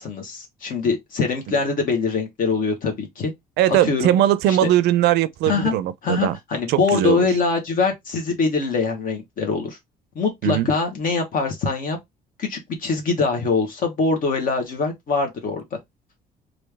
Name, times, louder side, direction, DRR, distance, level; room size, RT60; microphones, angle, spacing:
voice 1, 0.0-3.3 3.8-4.1 4.5-4.6 5.4-5.7 6.0-9.8 10.1-12.0 12.4-15.8, left 4 dB, 55° left, 1.1 m, -23 dB
voice 2, 3.6-6.4 6.7-7.3 10.4-10.7, right 12 dB, 80° right, 0.4 m, -20 dB
3.2 x 2.5 x 3.3 m
cardioid pair, 110°, 17 cm